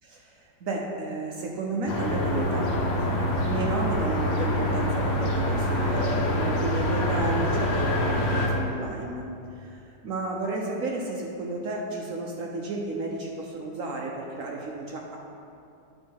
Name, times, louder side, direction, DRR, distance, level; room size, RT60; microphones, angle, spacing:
voice 1, 0.3-3.1 3.4-9.3 9.6-15.2, right 2 dB, 65° right, -1 dB, 0.8 m, -32 dB
sound 1, 1.9-8.5, left 1 dB, 80° left, 1.7 m, -25 dB
9.1 x 4.4 x 4.6 m, 2.6 s
omnidirectional pair, 2.0 m